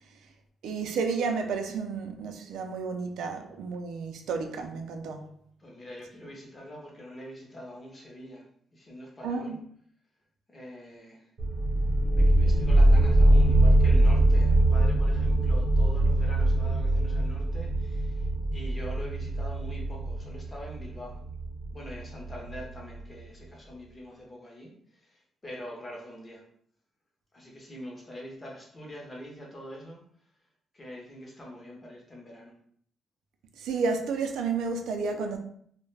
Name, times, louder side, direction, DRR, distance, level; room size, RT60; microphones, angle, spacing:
voice 1, 0.6-5.2 9.2-9.6 33.6-35.4, right 4 dB, 90° right, 0.3 m, -31 dB
voice 2, 5.6-8.4 8.7-9.6 10.5-11.3 12.1-18.3 18.5-21.2 21.7-24.7 25.0-26.4 27.3-30.0 30.7-32.5, equal, 20° left, 0.5 m, -44 dB
sound 1, 11.4-22.8, right 1 dB, 45° right, 0.7 m, -23 dB
2.3 x 2.1 x 3.1 m
cardioid pair, 175°, 0 cm